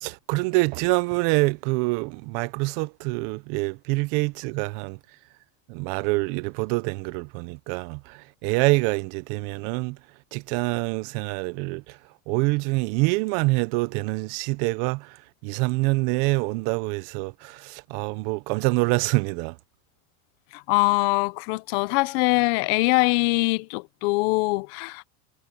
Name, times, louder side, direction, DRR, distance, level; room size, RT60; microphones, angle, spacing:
voice 1, 0.0-5.0 5.7-10.0 10.3-12.0 12.3-19.6, right 25 dB, 45° right, 0.6 m, -26 dB
voice 2, 20.5-25.1, left 24 dB, 50° left, 0.8 m, -23 dB
supercardioid pair, 160°, 40 cm